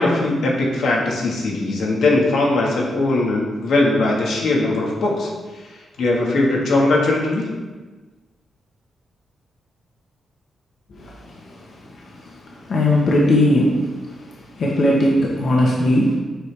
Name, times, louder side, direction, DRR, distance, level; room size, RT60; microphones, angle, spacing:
voice 1, 0.0-5.3 5.7-7.5, left 2 dB, 85° left, -3 dB, 1.6 m, -20 dB
voice 2, 11.0-11.4 12.2-12.3 12.6-13.8 14.6-16.2, left 1 dB, 60° left, -3 dB, 1.1 m, -18 dB
7.9 x 5.1 x 3.4 m, 1.3 s
cardioid pair, 105°, 0 cm